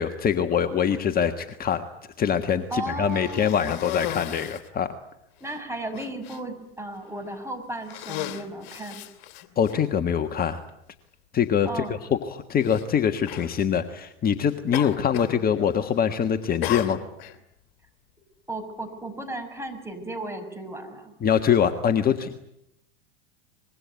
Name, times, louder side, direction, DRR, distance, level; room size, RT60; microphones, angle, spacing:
voice 1, 0.0-1.8 2.2-4.9 9.6-10.6 11.3-11.8 12.1-17.0 21.2-22.3, left 8 dB, 30° left, 8 dB, 1.5 m, -24 dB
voice 2, 2.7-3.5 5.4-9.0 11.7-11.9 18.5-21.1, right 2 dB, 10° right, 6 dB, 5.9 m, -35 dB
Cough, 3.1-4.7 5.4-5.5 5.9-6.4 7.2-7.4 7.8-9.7 10.7-10.8 12.6-12.8 13.2-13.5 14.7-15.4 15.7-16.1 16.6-17.4, left 13 dB, 55° left, 2.7 m, -35 dB
25.0 x 21.5 x 9.5 m, 0.80 s
hypercardioid pair, 90°, 30 cm